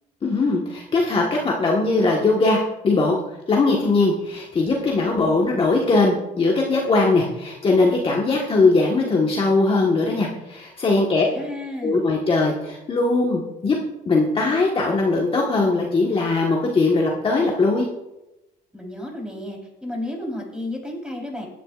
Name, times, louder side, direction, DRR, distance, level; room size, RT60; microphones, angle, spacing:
voice 1, 0.2-3.2 3.5-11.3 11.8-13.7 14.0-17.9, left 3 dB, 30° left, -2 dB, 1.5 m, -20 dB
voice 2, 11.2-12.1 18.7-21.5, left 1 dB, 5° right, -1 dB, 3.9 m, -32 dB
17.0 x 10.0 x 2.5 m, 0.95 s
cardioid pair, 110°, 17 cm